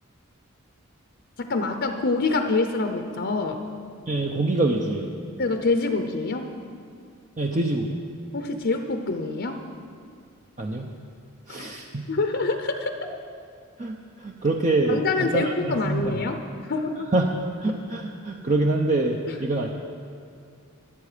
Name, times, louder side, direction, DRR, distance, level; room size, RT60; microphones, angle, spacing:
voice 1, 1.4-3.6 5.4-6.5 8.3-9.6 12.1-12.9 14.9-16.4 16.7-17.1, left 3 dB, 55° left, 6 dB, 0.8 m, -25 dB
voice 2, 4.1-5.2 7.4-8.0 10.6-10.9 11.5-12.1 13.8-16.1 17.1-17.3 17.6-19.7, right 2 dB, 35° right, 1 dB, 0.8 m, -25 dB
24.0 x 8.3 x 5.1 m, 2.3 s
head